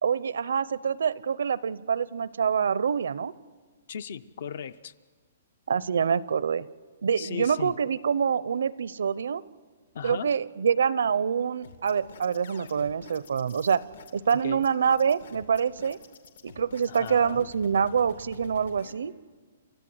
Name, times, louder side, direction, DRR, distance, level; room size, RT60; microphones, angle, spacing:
voice 1, 0.0-3.3 5.7-6.7 7.0-9.4 10.0-13.8 14.1-16.0 16.4-19.1, right 7 dB, 75° right, 19 dB, 0.6 m, -26 dB
voice 2, 3.9-4.9 7.2-7.7 9.9-10.3 14.4-14.7 16.9-17.5, left 8 dB, 45° left, 17 dB, 0.6 m, -36 dB
sound 1, 11.6-18.9, left 6 dB, 75° left, 2.4 m, -49 dB
29.5 x 14.0 x 7.9 m, 1.5 s
hypercardioid pair, 175°, 0 cm